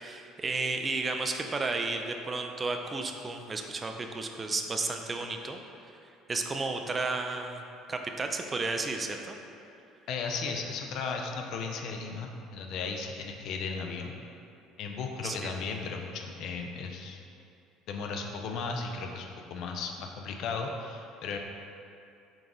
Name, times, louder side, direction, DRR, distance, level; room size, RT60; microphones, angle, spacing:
voice 1, 0.0-5.6 6.3-7.6 7.9-9.4 15.2-15.5, right 3 dB, 30° right, 4 dB, 0.3 m, -33 dB
voice 2, 10.1-14.2 14.8-17.2 17.9-21.4, left 4 dB, 60° left, 3 dB, 0.3 m, -35 dB
3.9 x 3.5 x 2.3 m, 2.6 s
hypercardioid pair, 65°, 0 cm